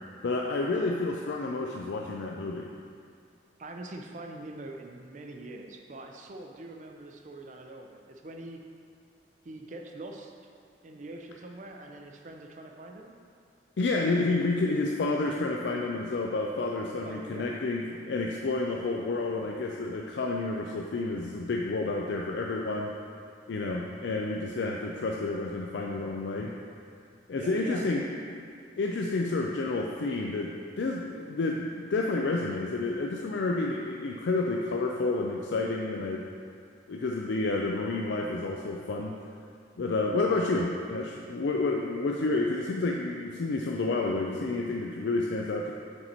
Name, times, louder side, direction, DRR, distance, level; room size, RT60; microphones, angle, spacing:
voice 1, 0.2-2.7 13.8-22.9 23.5-26.5 27.3-28.0 28.8-36.2 36.9-39.1 39.8-45.7, left 3 dB, 70° left, 0 dB, 0.4 m, -30 dB
voice 2, 3.6-8.6 9.4-10.3 10.8-13.1 17.0-17.6 27.3-28.0, right 2 dB, 40° right, 3 dB, 0.5 m, -43 dB
6.5 x 4.2 x 4.4 m, 2.2 s
head